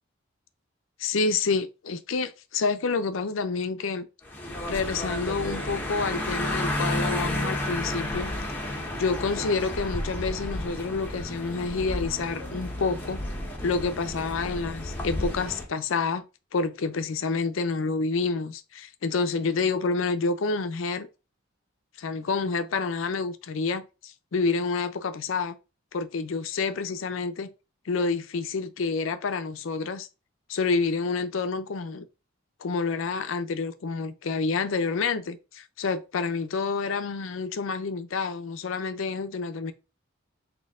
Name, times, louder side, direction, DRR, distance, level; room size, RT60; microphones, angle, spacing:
voice 1, 1.0-4.1 4.7-8.3 9.0-13.2 13.6-16.2 16.5-21.1 22.0-25.6 25.9-27.5 27.9-30.1 30.5-32.0 32.6-39.7, left 4 dB, 75° left, 0.5 m, -28 dB
sound 1, 4.3-15.7, left 1 dB, 10° left, 0.9 m, -32 dB
4.3 x 2.7 x 3.5 m
head